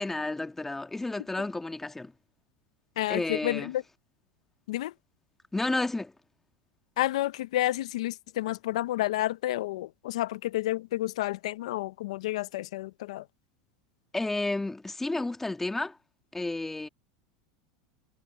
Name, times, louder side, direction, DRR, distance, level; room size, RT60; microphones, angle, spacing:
voice 1, 0.0-2.1 3.1-3.7 5.5-6.1 14.1-16.0 16.3-16.9, left 2 dB, 10° left, 1.8 m, -31 dB
voice 2, 3.0-3.8 4.7-4.9 7.0-13.3, left 15 dB, 80° left, 0.6 m, -30 dB
supercardioid pair, 115°, 3 cm